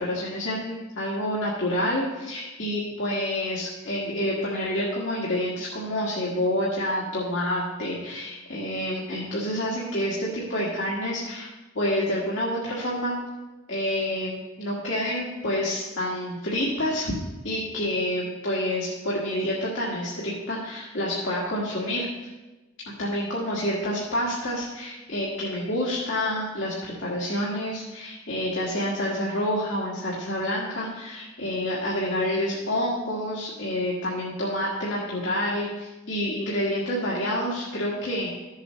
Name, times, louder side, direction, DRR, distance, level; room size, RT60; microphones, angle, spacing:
voice 1, 0.0-11.5 11.8-13.1 13.7-17.1 17.4-22.3 23.0-38.4, left 1 dB, 65° left, -5 dB, 1.8 m, -28 dB
14.0 x 7.5 x 3.2 m, 1.1 s
head